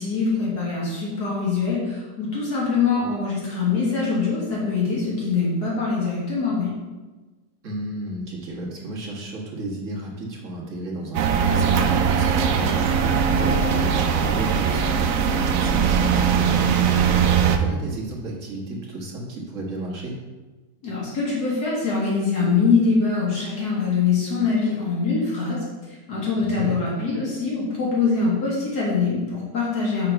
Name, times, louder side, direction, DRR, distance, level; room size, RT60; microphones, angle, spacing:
voice 1, 0.0-6.7 20.8-30.1, left 4 dB, 65° left, -5 dB, 2.1 m, -23 dB
voice 2, 7.6-17.1 17.4-20.1 26.3-26.8, right 1 dB, 45° right, -3 dB, 1.7 m, -33 dB
sound 1, 11.1-17.6, right 7 dB, 70° right, 0.8 m, -20 dB
5.0 x 4.6 x 5.8 m, 1.2 s
omnidirectional pair, 1.9 m